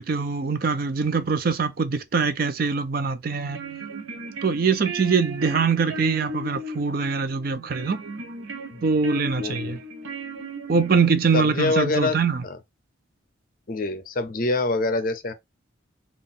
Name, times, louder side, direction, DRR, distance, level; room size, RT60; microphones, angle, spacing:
voice 1, 0.0-3.6 4.4-8.0 8.8-9.8 10.7-12.4, right 5 dB, 45° right, 0.4 m, -23 dB
sound 1, 3.3-11.3, right 1 dB, 80° right, 0.7 m, -36 dB
voice 2, 9.4-9.8 11.3-12.2 12.4-12.6 13.7-15.3, left 2 dB, 40° left, 0.5 m, -25 dB
3.7 x 2.4 x 3.6 m
head